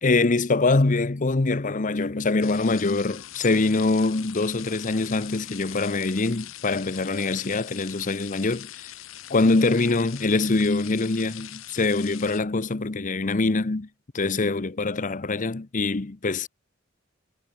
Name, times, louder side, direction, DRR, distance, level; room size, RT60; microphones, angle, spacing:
voice 1, 0.0-8.9 9.3-13.9 14.1-16.5, left 3 dB, 40° left, 0.8 m, -24 dB
sound 1, 2.4-12.4, left 13 dB, 75° left, 0.9 m, -42 dB
head